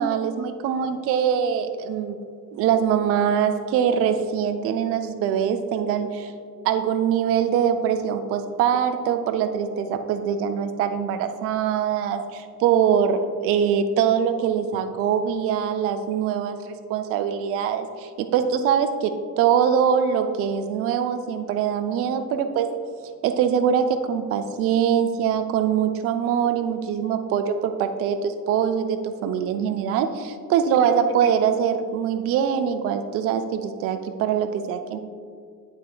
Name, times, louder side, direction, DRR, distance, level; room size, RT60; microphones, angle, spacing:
voice 1, 0.0-2.2 2.5-6.3 6.6-22.7 23.2-35.0, right 8 dB, 30° right, 8 dB, 0.4 m, -23 dB
8.2 x 7.8 x 2.3 m, 2.1 s
figure-of-eight pair, 65°, 50 cm